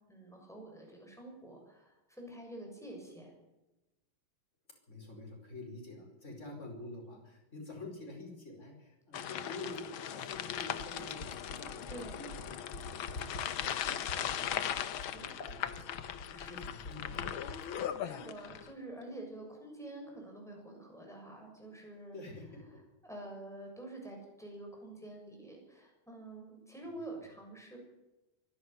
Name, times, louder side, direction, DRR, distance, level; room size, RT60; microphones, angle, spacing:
voice 1, 0.1-3.3 11.9-12.2 15.1-15.3 16.3-16.6 17.5-22.2 23.0-27.8, right 1 dB, ahead, 1 dB, 7.0 m, -48 dB
voice 2, 4.9-12.5 12.8-14.8 15.1-15.9 16.3-17.4 22.1-22.8 27.1-27.2, left 2 dB, 35° left, 1 dB, 5.7 m, -48 dB
sound 1, 9.1-18.7, left 9 dB, 75° left, 1.8 m, -39 dB
Fill (with liquid), 9.6-17.7 19.0-19.1, left 2 dB, 55° left, 2.8 m, -47 dB
24.5 x 11.5 x 9.5 m, 1.0 s
omnidirectional pair, 2.3 m